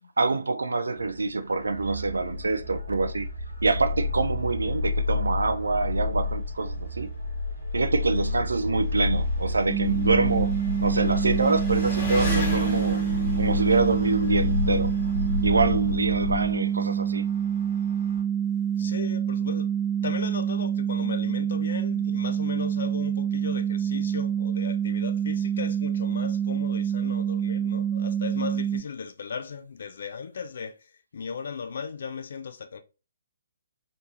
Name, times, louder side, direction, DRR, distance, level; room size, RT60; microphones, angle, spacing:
voice 1, 0.2-3.3 3.6-7.1 7.7-10.5 10.8-13.0 13.4-15.0 15.4-17.2, right 3 dB, 65° right, 0.4 m, -25 dB
sound 1, 0.9-16.5, left 2 dB, 90° left, 1.8 m, -30 dB
Engine, 3.6-3.7 4.1-4.2 5.2-5.3 5.5-18.2, right 1 dB, 25° left, 2.0 m, -37 dB
sound 2, 9.7-28.8, right 8 dB, 10° right, 0.5 m, -27 dB
voice 2, 18.8-19.7 20.0-32.8, left 6 dB, 50° left, 0.5 m, -37 dB
4.2 x 3.3 x 2.7 m
figure-of-eight pair, 135°, 0 cm